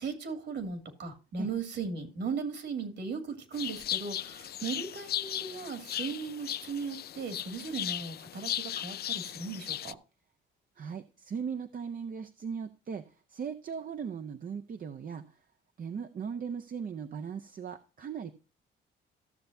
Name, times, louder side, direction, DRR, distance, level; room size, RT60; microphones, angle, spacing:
voice 1, 0.0-10.0, right 5 dB, 60° right, 9 dB, 2.4 m, -37 dB
sound 1, 3.5-9.9, left 11 dB, 55° left, 0.4 m, -37 dB
voice 2, 10.8-15.4 15.8-18.3, right 6 dB, 45° right, 7 dB, 0.7 m, -38 dB
14.5 x 6.7 x 2.7 m, 0.34 s
cardioid pair, 90°, 20 cm